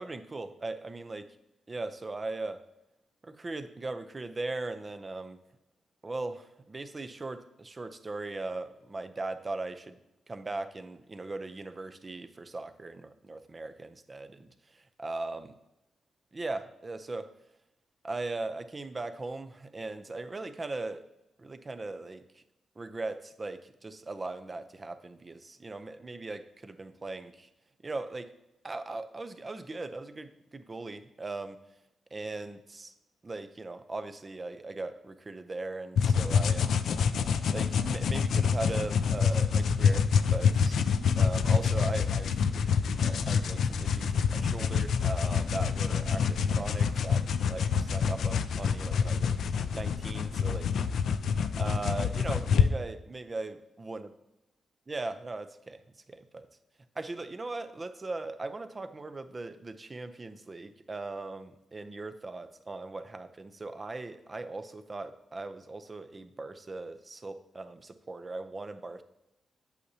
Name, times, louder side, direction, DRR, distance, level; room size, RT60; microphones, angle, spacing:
voice 1, 0.0-1.4 1.7-2.6 3.2-5.4 6.0-10.0 10.3-15.5 16.3-17.3 18.0-21.0 21.4-22.4 22.8-27.5 27.8-28.3 28.6-31.6 32.1-32.9 33.2-36.7 37.5-40.8 41.2-42.3 42.9-49.3 49.7-50.7 51.3-54.1 54.9-55.8 56.1-56.5 57.0-69.0, right 2 dB, 30° right, 10 dB, 0.6 m, -39 dB
sound 1, 36.0-52.7, left 6 dB, 75° left, 0.4 m, -27 dB
8.3 x 6.6 x 2.8 m, 0.91 s
cardioid pair, 85°, 0 cm